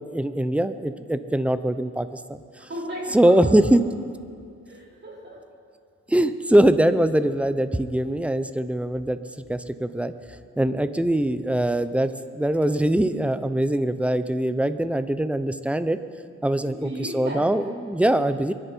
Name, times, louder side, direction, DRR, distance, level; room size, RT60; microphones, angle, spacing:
voice 1, 0.0-2.7 3.1-3.8 6.1-9.2 9.5-10.1 10.6-16.0 16.4-18.5, right 1 dB, 5° right, 11 dB, 0.7 m, -22 dB
voice 2, 2.6-3.5 4.7-5.5 16.6-17.5, right 1 dB, 40° right, -4 dB, 4.9 m, -35 dB
23.5 x 10.5 x 4.6 m, 2.3 s
cardioid pair, 90°, 30 cm